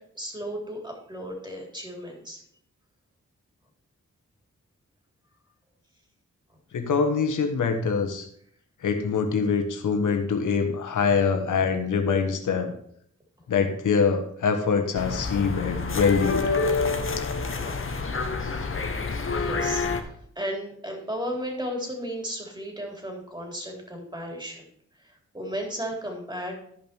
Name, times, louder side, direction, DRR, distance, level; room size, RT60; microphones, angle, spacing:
voice 1, 0.2-2.4 19.3-24.6 25.0-26.5, equal, 15° right, 1 dB, 3.8 m, -34 dB
voice 2, 6.7-8.3 8.8-12.7 13.5-16.4, left 5 dB, 90° left, 6 dB, 1.3 m, -24 dB
sound 1, 14.9-20.0, left 4 dB, 45° left, 1.2 m, -27 dB
13.0 x 5.4 x 4.6 m, 0.64 s
cardioid pair, 60°, 30 cm